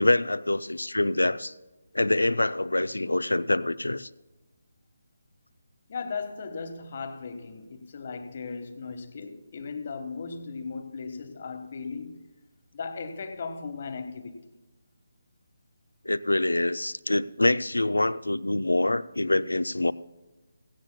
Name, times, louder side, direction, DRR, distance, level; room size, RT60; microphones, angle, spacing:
voice 1, 0.0-1.5 1.9-4.1 16.0-19.9, left 2 dB, 75° left, 0.5 m, -25 dB
voice 2, 5.9-12.2 12.7-14.4, left 5 dB, 40° left, 1.3 m, -37 dB
17.0 x 16.0 x 2.2 m
figure-of-eight pair, 150°, 0 cm